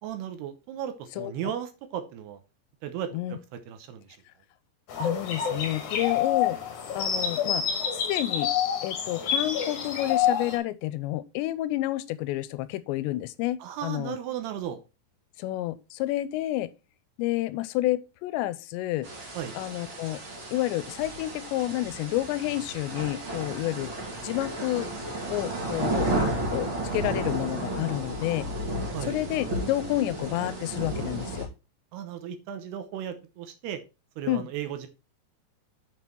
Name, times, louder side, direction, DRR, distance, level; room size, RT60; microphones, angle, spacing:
voice 1, 0.0-2.4 2.8-3.4 3.7-4.2 13.6-14.8 19.3-19.6 28.9-29.2 31.9-33.8 34.2-34.9, right 10 dB, 75° right, 2.8 m, -35 dB
sound 1, 4.9-10.6, left 8 dB, 55° left, 2.3 m, -28 dB
voice 2, 5.0-6.6 6.9-7.7 7.9-8.5 8.8-14.2 15.4-16.7 17.2-19.1 19.6-20.2 20.5-23.9 24.2-24.9 25.3-26.2 26.5-28.5 29.0-31.5 34.3-34.5, left 15 dB, 85° left, 2.8 m, -29 dB
sound 2, 19.0-31.4, right 1 dB, 35° right, 2.7 m, -33 dB
7.4 x 6.1 x 4.5 m
omnidirectional pair, 5.1 m